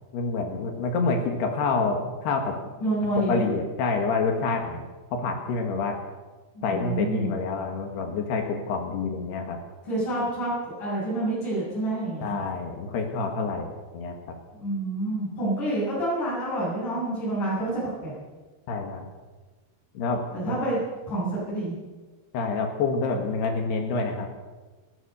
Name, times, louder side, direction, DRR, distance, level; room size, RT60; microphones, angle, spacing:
voice 1, 0.1-2.6 3.2-6.0 6.6-9.6 12.2-14.4 18.7-19.1 20.0-20.6 22.3-24.3, left 4 dB, 75° left, 3 dB, 3.9 m, -27 dB
voice 2, 2.8-3.4 6.7-7.3 9.9-10.5 10.8-12.4 14.6-17.7 18.0-18.1 20.3-20.8 21.1-21.7, right 1 dB, 50° left, -8 dB, 9.6 m, -28 dB
30.0 x 13.0 x 7.1 m, 1.3 s
omnidirectional pair, 4.8 m